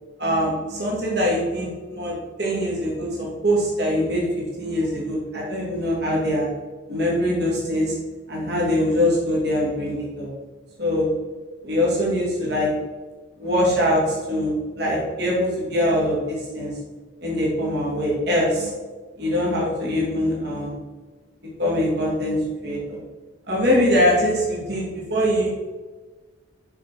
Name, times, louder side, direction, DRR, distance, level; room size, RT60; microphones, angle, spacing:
voice 1, 0.2-6.5 6.9-8.0 8.3-10.3 10.8-11.1 11.6-12.7 13.4-16.8 17.2-18.7 19.2-20.8 21.6-23.0 23.5-25.5, equal, 55° right, -4 dB, 2.5 m, -23 dB
6.7 x 6.1 x 4.9 m, 1.3 s
head